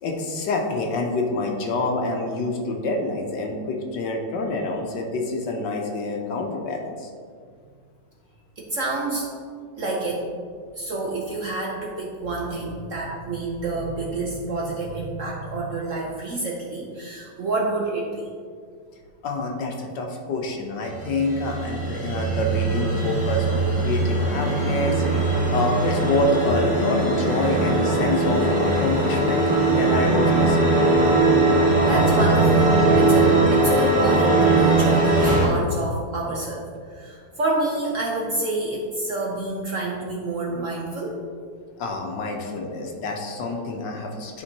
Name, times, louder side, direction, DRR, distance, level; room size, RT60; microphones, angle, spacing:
voice 1, 0.0-7.1 19.2-25.0 25.5-30.7 41.8-44.4, left 2 dB, 70° left, 1 dB, 1.4 m, -27 dB
voice 2, 8.6-9.3 9.8-10.2 10.8-18.3 31.8-41.2, right 2 dB, 55° right, -3 dB, 0.9 m, -28 dB
sound 1, 20.8-35.5, right 2 dB, 5° right, 1.4 m, -20 dB
11.5 x 4.4 x 2.9 m, 2.1 s
omnidirectional pair, 2.1 m